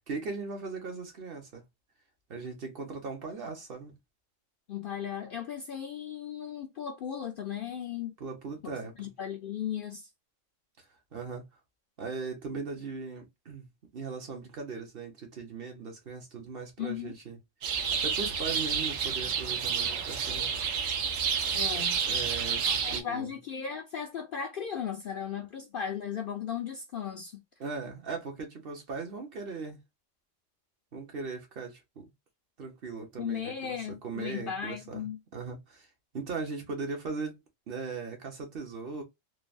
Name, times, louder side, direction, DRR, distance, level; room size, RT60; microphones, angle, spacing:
voice 1, 0.1-1.6 2.3-4.0 8.2-8.9 10.8-10.9 11.1-11.4 12.0-13.7 13.9-17.4 17.7-20.5 21.7-23.3 27.6-29.8 30.9-32.1 32.6-35.1 35.3-35.9 36.1-39.0, right 4 dB, 50° right, 1.0 m, -39 dB
voice 2, 4.7-8.2 8.6-10.1 16.8-17.1 21.5-22.0 22.7-27.4 33.2-35.2, left 8 dB, 60° left, 0.6 m, -36 dB
sound 1, 17.6-23.0, right 6 dB, 90° right, 1.1 m, -30 dB
3.3 x 2.1 x 2.4 m
omnidirectional pair, 1.3 m